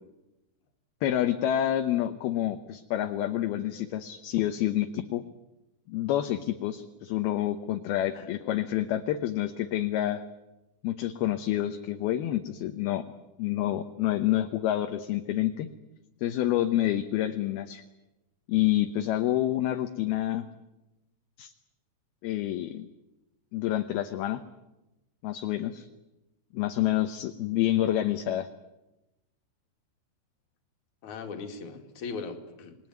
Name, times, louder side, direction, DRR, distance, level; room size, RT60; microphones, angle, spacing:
voice 1, 1.0-5.2 5.9-10.2 10.8-13.0 13.4-15.7 16.2-17.8 18.5-20.5 21.4-21.5 22.2-22.9 23.5-24.4 25.2-25.9 26.5-28.5, left 13 dB, 75° left, 7 dB, 2.8 m, -28 dB
voice 2, 8.2-8.6 31.0-32.8, left 4 dB, 50° left, 4 dB, 3.4 m, -39 dB
27.5 x 21.5 x 9.4 m, 0.99 s
omnidirectional pair, 4.8 m